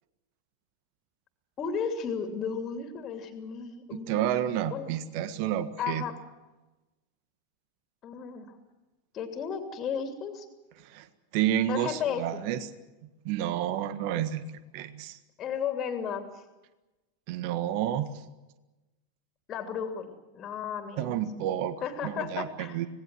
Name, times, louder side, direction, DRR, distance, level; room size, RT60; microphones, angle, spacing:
voice 1, 1.6-4.4 4.7-4.9 5.8-6.2 8.0-8.6 9.1-10.5 11.7-12.3 15.4-16.4 19.5-21.2 21.8-22.8, left 7 dB, 30° left, 6 dB, 3.0 m, -34 dB
voice 2, 3.9-6.0 10.8-11.1 11.3-12.7 13.2-14.4 14.7-15.2 17.3-18.2 21.0-21.8 22.0-22.9, right 11 dB, 45° right, 12 dB, 1.6 m, -30 dB
26.0 x 20.0 x 7.7 m, 1.1 s
figure-of-eight pair, 90°, 0 cm